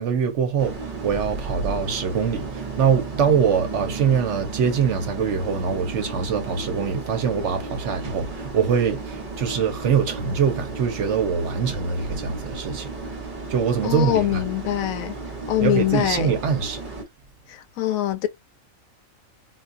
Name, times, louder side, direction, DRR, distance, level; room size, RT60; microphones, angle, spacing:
voice 1, 0.0-12.9 13.5-14.4 15.6-16.8, right 6 dB, 60° right, 1.0 m, -23 dB
sound 1, 0.6-17.0, right 3 dB, 40° right, 1.1 m, -34 dB
voice 2, 13.8-15.2 15.5-16.4 17.5-18.3, left 13 dB, 85° left, 1.0 m, -24 dB
4.1 x 2.3 x 2.6 m
omnidirectional pair, 1.4 m